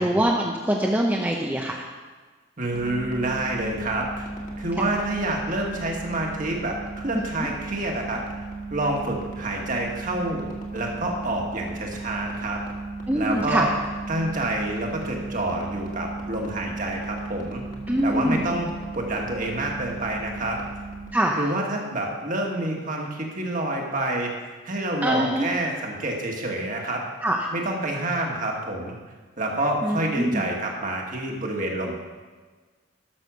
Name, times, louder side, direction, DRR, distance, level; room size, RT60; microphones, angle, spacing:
voice 1, 0.0-1.8 13.1-13.6 17.9-18.5 21.1-21.4 25.0-25.5 27.2-27.4 29.8-30.5, right 1 dB, 10° right, 0 dB, 0.6 m, -23 dB
voice 2, 2.6-4.3 4.6-8.2 8.7-12.6 13.1-13.7 14.1-17.6 18.0-18.7 18.9-20.6 21.3-24.3 24.6-27.0 27.5-28.9 29.4-31.9, right 1 dB, 40° right, 0 dB, 1.6 m, -28 dB
sound 1, 2.7-21.1, right 3 dB, 40° left, 1.8 m, -36 dB
12.0 x 6.3 x 6.3 m, 1.4 s
head